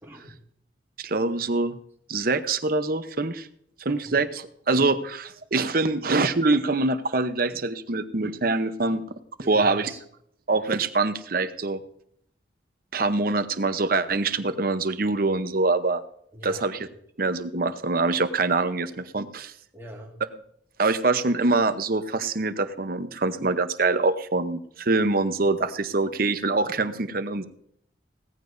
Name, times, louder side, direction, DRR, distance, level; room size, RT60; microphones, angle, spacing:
voice 1, 0.0-0.4 3.9-4.2 4.8-4.9 9.4-10.0 16.3-16.6 19.7-20.2, equal, 15° right, -1 dB, 1.9 m, -43 dB
voice 2, 1.0-1.8 2.1-3.5 3.8-9.0 9.5-9.9 10.5-11.8 12.9-16.0 16.4-16.9 17.2-19.5 20.8-27.5, right 3 dB, 50° right, 11 dB, 0.8 m, -24 dB
17.5 x 14.5 x 2.7 m, 0.68 s
head